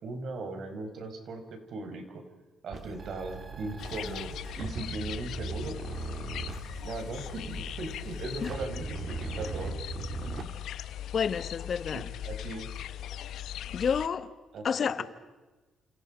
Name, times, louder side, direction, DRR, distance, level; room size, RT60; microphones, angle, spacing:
voice 1, 0.0-2.2 2.6-5.8 6.8-9.8 10.3-10.5 11.9-12.7 14.5-14.7 15.0-15.1, right 2 dB, 65° right, 6 dB, 5.3 m, -38 dB
sound 1, 2.7-10.4, right 4 dB, 45° right, 4.0 m, -40 dB
sound 2, 3.8-14.1, left 11 dB, 75° left, 1.0 m, -40 dB
voice 2, 11.1-12.1 13.7-14.3 14.6-15.0, left 6 dB, 50° left, 13 dB, 1.6 m, -29 dB
30.0 x 28.0 x 5.2 m, 1.2 s
cardioid pair, 90°, 0 cm